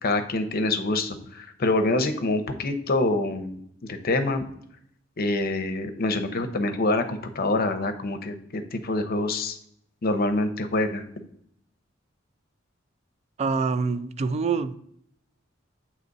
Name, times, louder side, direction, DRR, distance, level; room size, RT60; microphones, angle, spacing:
voice 1, 0.0-4.4 5.2-9.6 10.0-11.0, left 2 dB, 50° left, 8 dB, 0.7 m, -26 dB
voice 2, 13.4-14.7, right 4 dB, 35° right, 13 dB, 0.3 m, -25 dB
8.1 x 3.0 x 3.9 m, 0.68 s
head